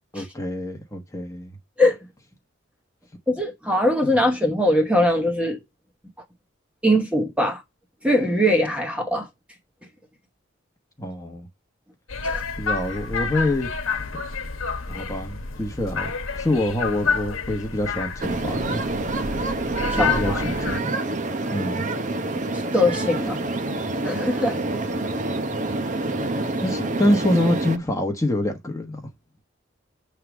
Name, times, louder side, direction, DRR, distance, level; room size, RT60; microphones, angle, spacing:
voice 1, 0.1-1.5 4.0-4.1 11.0-11.5 12.6-13.7 14.9-18.8 20.0-21.0 21.5-21.9 26.6-29.0, left 1 dB, 15° left, 1.0 m, -26 dB
voice 2, 3.3-5.6 6.8-7.6 8.0-9.3 12.2-12.4 19.9-20.4 22.7-23.4 24.0-24.6, left 1 dB, 5° right, 1.1 m, -21 dB
sound 1, 12.1-20.8, left 5 dB, 80° left, 1.1 m, -29 dB
sound 2, 18.2-27.8, right 2 dB, 40° right, 0.7 m, -27 dB
7.6 x 3.4 x 6.0 m
head